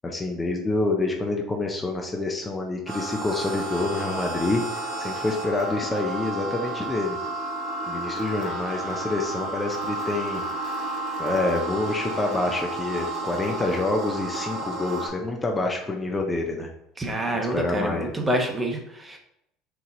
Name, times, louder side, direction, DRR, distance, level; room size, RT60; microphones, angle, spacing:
voice 1, 0.0-7.2 7.9-10.4 11.2-16.7 17.3-18.1, left 2 dB, 20° left, 2 dB, 0.8 m, -27 dB
sound 1, 2.9-15.1, right 2 dB, 45° right, 1.8 m, -31 dB
voice 2, 17.0-19.2, right 1 dB, 20° right, 2 dB, 1.1 m, -27 dB
4.7 x 2.8 x 3.9 m, 0.78 s
hypercardioid pair, 80°, 0 cm